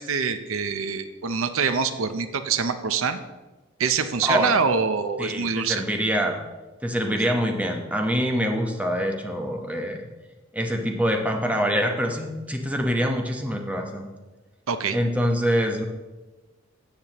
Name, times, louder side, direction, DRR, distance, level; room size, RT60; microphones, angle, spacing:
voice 1, 0.0-3.2 3.8-5.8 7.1-7.4 14.7-15.0, right 5 dB, 70° right, 10 dB, 0.6 m, -25 dB
voice 2, 4.2-4.5 5.2-6.4 6.8-10.1 10.5-14.1 14.9-15.8, equal, 5° right, 3 dB, 1.0 m, -25 dB
13.5 x 8.5 x 3.0 m, 1.2 s
head